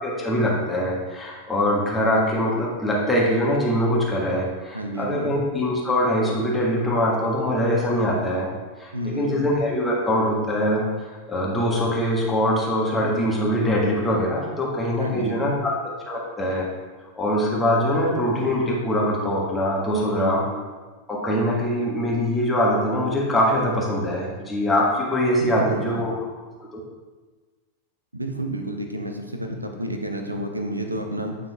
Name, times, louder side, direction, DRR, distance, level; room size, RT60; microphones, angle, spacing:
voice 1, 0.0-8.5 8.8-15.5 16.1-16.7 17.2-20.4 21.1-26.1, equal, 10° left, -5 dB, 1.5 m, -23 dB
voice 2, 4.7-5.4 8.9-9.4 15.0-15.6 19.9-20.4 25.4-26.0 28.1-31.4, right 1 dB, 85° right, 5 dB, 0.6 m, -30 dB
9.1 x 3.8 x 3.5 m, 1.3 s
figure-of-eight pair, 90°, 0 cm